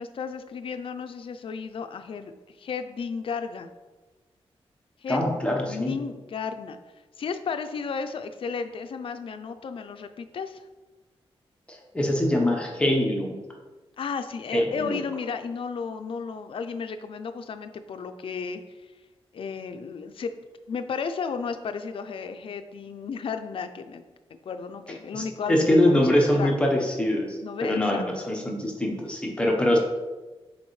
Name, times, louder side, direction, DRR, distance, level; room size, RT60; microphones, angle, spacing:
voice 1, 0.0-2.3 2.6-3.7 5.0-5.2 5.7-6.8 7.2-10.7 14.0-18.6 19.3-20.3 20.7-24.0 24.5-26.5 27.4-28.0, left 5 dB, 60° left, 8 dB, 0.5 m, -33 dB
voice 2, 5.1-5.9 11.7-13.4 14.5-15.0 25.1-29.8, left 1 dB, 10° left, -1 dB, 0.9 m, -24 dB
7.1 x 4.2 x 3.2 m, 1.2 s
wide cardioid pair, 125°, 10 cm